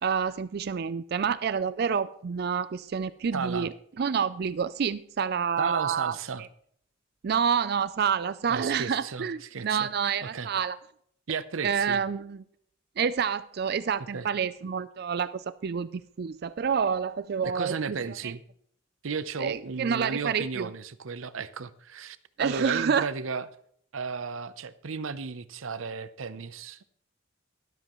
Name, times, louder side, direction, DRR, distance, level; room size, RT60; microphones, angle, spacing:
voice 1, 0.0-3.7 4.0-6.2 7.2-10.8 11.6-12.4 13.0-18.3 19.4-20.7 22.4-23.1, right 6 dB, 50° right, 0.4 m, -28 dB
voice 2, 3.3-3.7 5.6-6.5 8.5-9.9 10.2-10.5 11.3-12.0 14.0-14.3 17.4-18.4 19.0-23.5 23.9-26.8, right 5 dB, 85° right, 0.7 m, -34 dB
13.0 x 12.5 x 3.1 m
head